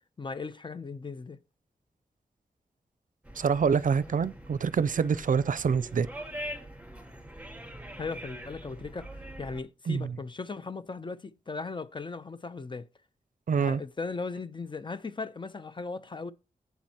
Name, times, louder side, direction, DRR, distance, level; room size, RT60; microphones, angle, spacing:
voice 1, 0.2-1.4 8.0-12.9 13.6-16.3, left 4 dB, 35° left, 0.7 m, -37 dB
sound 1, 3.2-9.6, equal, 10° right, 3.7 m, -43 dB
voice 2, 3.4-6.1 9.9-10.1 13.5-13.8, right 6 dB, 65° right, 0.5 m, -26 dB
12.0 x 8.2 x 2.9 m
wide cardioid pair, 135°, 15 cm